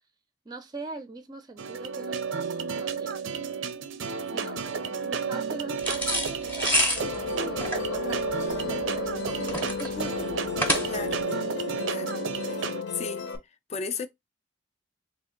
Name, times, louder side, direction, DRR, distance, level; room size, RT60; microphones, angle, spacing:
voice 1, 0.5-3.2 4.3-7.6 7.9-11.0, right 3 dB, 20° right, 0.5 m, -42 dB
sound 1, 1.6-12.8, right 5 dB, 80° right, 0.5 m, -32 dB
sound 2, 5.8-11.2, equal, 10° left, 0.7 m, -28 dB
Musical instrument, 7.0-13.4, left 5 dB, 80° left, 0.8 m, -34 dB
voice 2, 10.9-11.2 11.9-12.2 12.9-13.2 13.7-14.1, left 5 dB, 35° left, 0.4 m, -34 dB
3.4 x 2.5 x 3.7 m
head